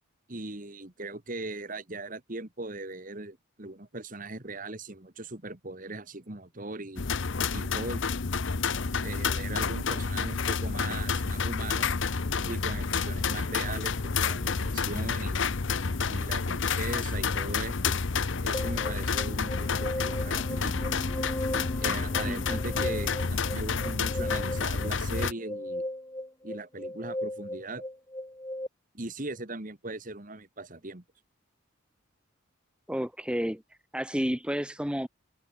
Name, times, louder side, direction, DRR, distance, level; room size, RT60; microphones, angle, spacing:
voice 1, 0.3-7.0 7.5-8.0 9.0-12.0 12.5-15.5 16.1-18.0 18.4-20.9 21.8-25.9 26.4-27.8 28.9-31.0, right 2 dB, 40° right, 1.9 m, -39 dB
sound 1, 7.0-25.3, left 5 dB, 65° left, 0.9 m, -29 dB
sound 2, 18.5-28.7, left 1 dB, 15° left, 3.4 m, -37 dB
voice 2, 22.2-22.7 32.9-33.6 33.9-35.1, equal, 5° right, 1.8 m, -31 dB
head